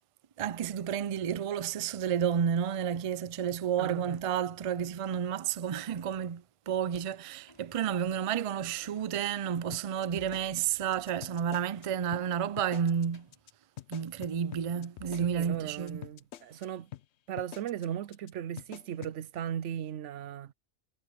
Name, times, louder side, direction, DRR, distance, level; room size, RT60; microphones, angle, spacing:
voice 1, 0.4-13.3 13.9-16.0, right 8 dB, 50° right, 0.4 m, -31 dB
voice 2, 3.8-4.2 15.0-16.9 17.3-20.5, right 10 dB, 85° right, 1.0 m, -37 dB
Sliding door / Slam, 6.8-13.5, left 1 dB, 20° left, 5.5 m, -63 dB
sound 1, 9.7-11.8 12.1-12.2 12.6-13.0 13.3-13.5 13.8-16.6 16.9-17.0 17.4-17.8 18.1-18.3 18.6-19.1, left 12 dB, 70° left, 0.9 m, -46 dB
omnidirectional pair, 1.2 m